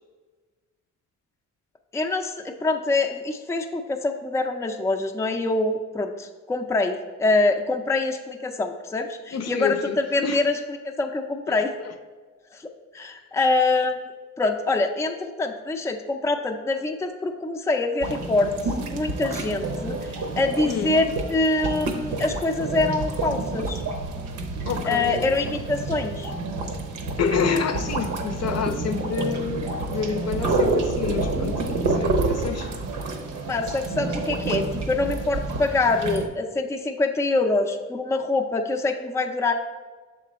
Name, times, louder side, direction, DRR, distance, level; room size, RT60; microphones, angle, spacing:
voice 1, 1.9-10.6 11.0-11.7 12.5-14.0 14.4-18.5 18.8-23.8 24.8-26.3 33.5-39.5, left 3 dB, 10° left, 4 dB, 0.4 m, -25 dB
voice 2, 9.3-10.0 10.2-10.4 11.5-11.9 20.6-21.0 24.7-25.2 27.2-32.7, left 6 dB, 55° left, 8 dB, 0.6 m, -28 dB
sound 1, 18.0-36.3, right 3 dB, 75° right, 0.8 m, -29 dB
sound 2, 23.7-32.0, right 2 dB, 55° right, 0.5 m, -39 dB
6.7 x 3.7 x 4.2 m, 1.4 s
cardioid pair, 90°, 30 cm